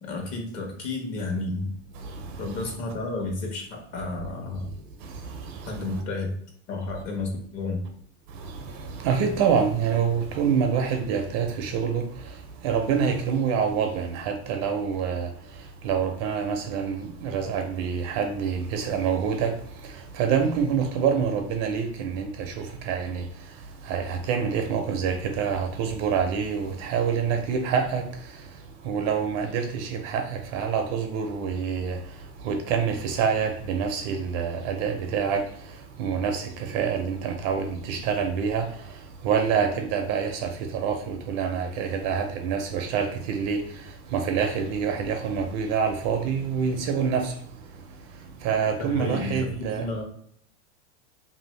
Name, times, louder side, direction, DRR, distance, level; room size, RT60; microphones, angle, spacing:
voice 1, 0.0-1.7 2.4-4.7 5.6-6.3 6.7-7.8 48.8-50.0, left 2 dB, 45° left, 1.1 m, -31 dB
voice 2, 2.0-2.7 5.0-6.0 8.3-12.1 12.6-15.3 15.8-19.6 19.8-23.3 23.8-28.0 28.8-32.0 32.4-35.4 36.0-38.7 39.2-43.8 44.1-47.4 48.4-49.9, right 6 dB, 40° right, 0.4 m, -26 dB
2.6 x 2.6 x 3.1 m
supercardioid pair, 135°, 36 cm